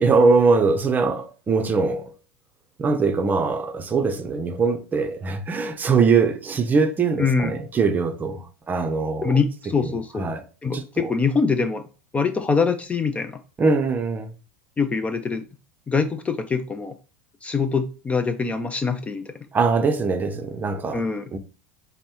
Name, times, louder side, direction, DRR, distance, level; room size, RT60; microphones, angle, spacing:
voice 1, 0.0-2.1 2.8-9.4 9.8-10.5 10.7-11.1 13.6-14.3 19.5-21.0 21.3-21.4, right 4 dB, 25° right, 0.6 m, -22 dB
voice 2, 7.2-7.5 9.2-10.3 10.6-11.8 12.1-13.4 14.8-15.4 15.9-17.0 17.4-19.3 20.9-21.4, left 5 dB, 15° left, 0.3 m, -24 dB
5.2 x 2.1 x 3.0 m
hypercardioid pair, 90°, 7 cm